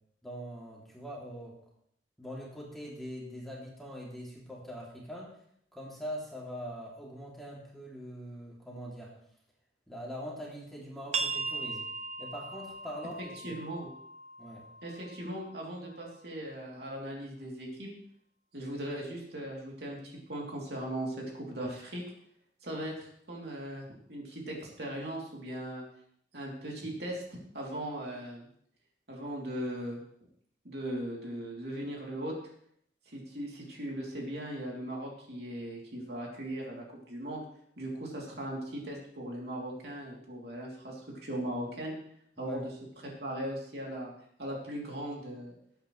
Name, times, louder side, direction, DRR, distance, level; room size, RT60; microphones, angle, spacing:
voice 1, 0.2-1.6 2.2-5.3 5.7-9.1 9.9-11.9 12.2-13.3 14.4-14.6 42.4-42.6, equal, ahead, -4 dB, 2.9 m, -42 dB
sound 1, 11.1-16.5, right 4 dB, 40° right, 0.7 m, -39 dB
voice 2, 13.4-13.9 14.8-17.9 18.5-22.0 22.6-25.8 26.3-28.5 29.1-30.0 30.6-32.3 33.1-37.4 37.8-41.9 42.4-42.6 43.2-44.1 44.4-45.5, right 1 dB, 65° right, -2 dB, 3.2 m, -38 dB
18.5 x 9.0 x 3.3 m, 0.66 s
head